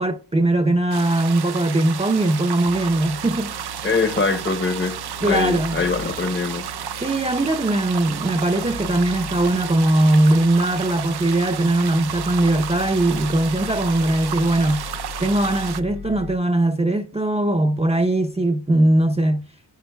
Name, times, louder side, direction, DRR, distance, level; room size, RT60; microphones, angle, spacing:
voice 1, 0.0-3.6 5.2-5.8 7.0-14.9 15.2-19.5, right 1 dB, 15° right, 0.6 m, -20 dB
sound 1, 0.9-15.8, right 9 dB, 60° right, 0.6 m, -32 dB
sound 2, 2.6-16.4, left 6 dB, 65° left, 0.8 m, -39 dB
voice 2, 3.8-6.7, left 4 dB, 25° left, 0.8 m, -23 dB
15.0 x 5.9 x 2.2 m
cardioid pair, 65°, 43 cm